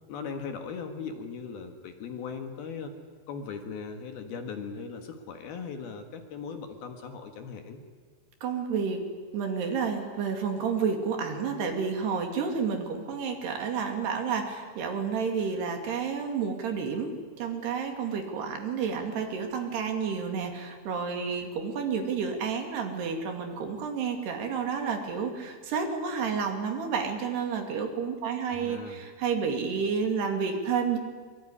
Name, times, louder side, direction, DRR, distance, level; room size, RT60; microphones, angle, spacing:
voice 1, 0.1-2.9 3.3-7.8 28.5-29.0, left 5 dB, 60° left, 6 dB, 3.2 m, -38 dB
voice 2, 8.4-9.0 9.3-31.0, right 6 dB, 65° right, 5 dB, 4.4 m, -30 dB
24.0 x 23.5 x 10.0 m, 1.5 s
omnidirectional pair, 5.4 m